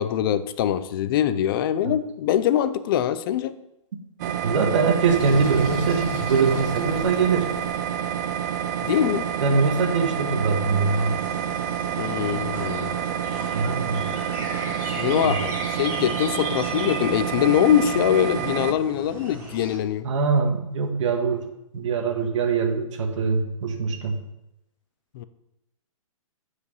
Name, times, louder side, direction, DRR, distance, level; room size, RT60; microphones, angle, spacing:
voice 1, 0.0-3.5 8.8-9.3 12.0-12.9 14.8-20.1 25.1-25.2, left 10 dB, 40° left, 13 dB, 0.6 m, -23 dB
sound 1, 4.2-18.7, right 9 dB, 30° right, 0.5 m, -28 dB
voice 2, 4.2-7.5 9.4-11.2 13.5-14.1 15.0-15.3 20.0-21.4 21.7-24.2, right 5 dB, 60° right, 5 dB, 1.5 m, -23 dB
Sink (filling or washing), 5.1-7.8, left 7 dB, 25° left, 1.0 m, -37 dB
sound 2, 10.8-19.8, right 2 dB, 15° right, 2.4 m, -37 dB
8.0 x 5.0 x 6.9 m, 0.87 s
hypercardioid pair, 140°, 18 cm